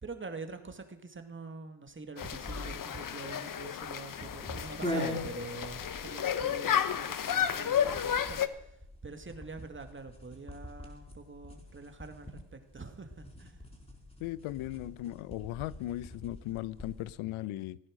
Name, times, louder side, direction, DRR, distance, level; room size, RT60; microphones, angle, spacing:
voice 1, 0.0-8.8 9.0-13.7, right 3 dB, 25° right, 2.1 m, -45 dB
sound 1, 2.2-8.5, left 9 dB, 40° left, 1.1 m, -32 dB
sound 2, 2.2-17.1, left 1 dB, 10° left, 4.6 m, -44 dB
voice 2, 14.2-17.8, left 15 dB, 75° left, 0.8 m, -37 dB
17.5 x 9.8 x 6.4 m
supercardioid pair, 80°, 49 cm